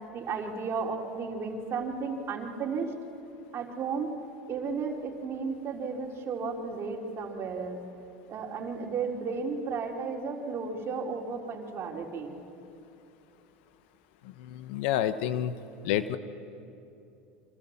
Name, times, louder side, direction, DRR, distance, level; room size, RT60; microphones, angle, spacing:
voice 1, 0.1-2.9 3.5-4.2 4.5-7.8 8.3-12.4, right 5 dB, 45° right, 1 dB, 3.9 m, -34 dB
voice 2, 14.4-15.5 15.8-16.2, left 11 dB, 70° left, 12 dB, 1.2 m, -28 dB
30.0 x 26.0 x 7.3 m, 2.7 s
hypercardioid pair, 90°, 6 cm